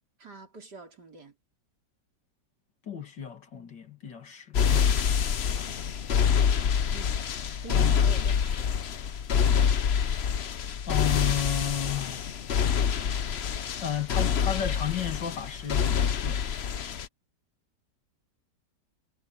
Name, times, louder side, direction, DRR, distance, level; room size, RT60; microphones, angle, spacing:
voice 1, 0.2-1.3 6.9-7.2 7.6-8.7, right 4 dB, 65° right, 4.5 m, -45 dB
voice 2, 2.9-4.9 7.7-8.0 10.9-12.2 13.8-16.4, left 9 dB, 85° left, 3.0 m, -33 dB
sound 1, 4.5-17.1, left 7 dB, 50° left, 0.8 m, -26 dB
omnidirectional pair, 1.9 m